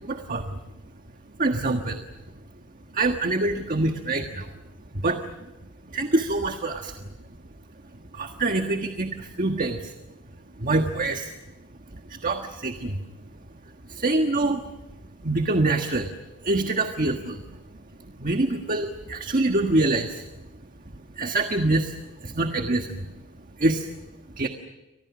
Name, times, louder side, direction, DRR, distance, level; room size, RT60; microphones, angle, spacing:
voice 1, 0.0-0.6 1.4-2.0 2.9-4.5 4.9-5.2 5.9-7.0 8.1-9.9 10.6-11.3 11.9-13.0 13.9-14.6 15.2-16.1 16.4-17.4 18.2-20.2 21.1-23.1 23.6-23.9 24.4-24.5, right 2 dB, 40° right, 5 dB, 1.5 m, -25 dB
30.0 x 24.5 x 6.2 m, 1.0 s
head